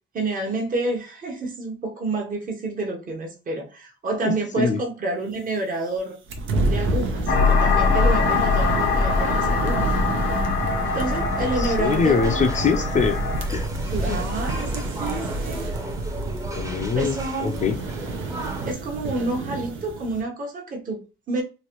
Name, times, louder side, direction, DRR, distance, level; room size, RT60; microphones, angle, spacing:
voice 1, 0.1-6.2 6.6-9.9 10.9-12.5 13.9-15.7 16.9-17.7 18.7-21.4, right 2 dB, 45° right, 1.0 m, -29 dB
voice 2, 4.2-4.8 11.4-13.2 13.5-13.6 14.1-14.2 16.5-17.8, left 5 dB, 40° left, 0.5 m, -23 dB
sound 1, 6.3-20.2, right 2 dB, 85° right, 0.7 m, -28 dB
sound 2, 7.3-13.5, left 4 dB, 85° left, 1.1 m, -23 dB
sound 3, 10.6-18.7, right 1 dB, 15° right, 0.7 m, -38 dB
3.1 x 2.5 x 2.9 m
cardioid pair, 90°, 20 cm